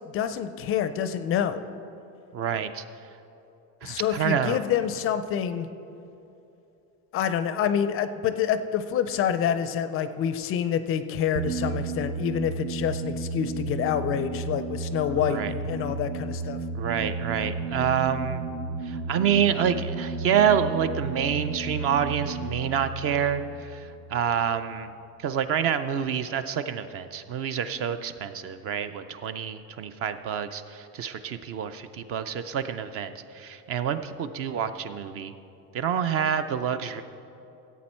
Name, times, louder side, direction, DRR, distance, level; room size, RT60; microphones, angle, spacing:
voice 1, 0.1-1.6 3.8-5.7 7.1-16.6, left 9 dB, 35° left, 11 dB, 0.4 m, -27 dB
voice 2, 2.3-2.8 3.8-4.6 15.2-15.5 16.7-18.4 18.8-24.9 25.2-35.3 35.7-37.0, right 8 dB, 40° right, 11 dB, 0.4 m, -27 dB
sound 1, 11.4-24.6, right 4 dB, 80° right, 1.0 m, -33 dB
14.5 x 8.3 x 4.3 m, 2.9 s
cardioid pair, 145°, 37 cm